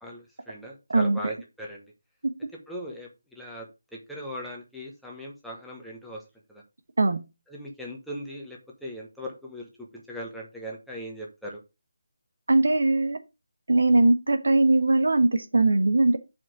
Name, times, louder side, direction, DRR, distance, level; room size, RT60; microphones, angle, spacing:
voice 1, 0.0-1.8 2.7-6.2 6.5-6.6 7.5-11.6, equal, ahead, 1.3 m, -39 dB
voice 2, 0.9-1.3 7.0-7.2 12.5-13.2 13.7-16.2, right 2 dB, 60° right, 1.1 m, -20 dB
5.8 x 5.0 x 6.4 m
figure-of-eight pair, 150°, 0 cm